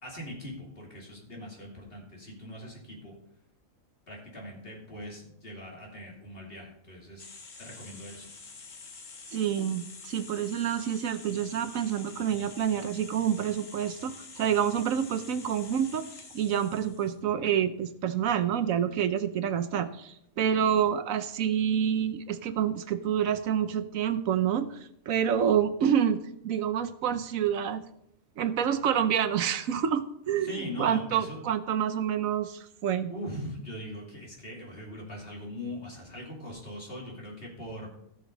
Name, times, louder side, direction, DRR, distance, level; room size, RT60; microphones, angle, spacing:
voice 1, 0.0-3.1 4.1-7.3 7.6-8.2 30.4-31.4 33.1-37.9, equal, 45° left, -2 dB, 3.0 m, -41 dB
sound 1, 7.2-17.2, left 4 dB, 70° left, 1.7 m, -47 dB
voice 2, 9.3-16.1 16.3-24.8 25.1-27.8 28.4-30.5 30.8-33.1, right 9 dB, 80° right, 11 dB, 1.1 m, -28 dB
16.0 x 6.7 x 4.0 m, 0.75 s
omnidirectional pair, 1.4 m